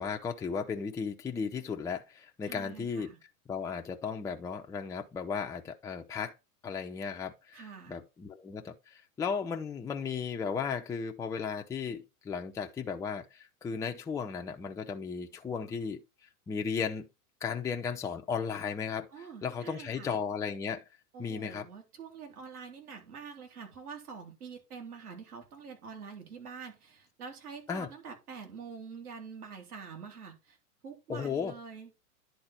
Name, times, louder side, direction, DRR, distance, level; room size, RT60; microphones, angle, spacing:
voice 1, 0.0-3.1 3.5-6.3 6.6-7.6 7.9-16.0 16.5-17.1 17.4-19.1 19.4-20.8 21.2-21.7 27.7-27.9 31.1-31.5, left 6 dB, 5° left, 0.5 m, -35 dB
voice 2, 2.4-3.2 7.5-8.0 19.1-20.2 21.1-30.6 30.8-31.9, right 6 dB, 75° right, 3.0 m, -46 dB
10.5 x 4.0 x 4.3 m
hypercardioid pair, 105°, 45 cm